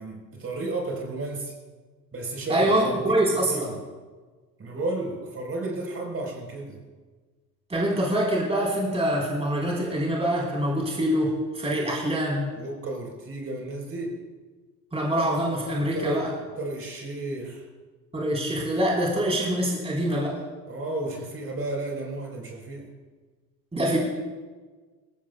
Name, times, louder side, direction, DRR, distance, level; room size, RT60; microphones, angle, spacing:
voice 1, 0.0-1.5 2.1-3.8 4.6-6.8 12.6-14.2 15.8-16.3 16.6-17.7 20.7-22.9, right 2 dB, 25° right, 0 dB, 4.2 m, -33 dB
voice 2, 2.5-3.7 7.7-12.5 14.9-16.3 18.1-20.4 23.7-24.0, right 1 dB, 10° right, -3 dB, 3.9 m, -25 dB
26.5 x 15.5 x 2.3 m, 1.4 s
figure-of-eight pair, 65°, 49 cm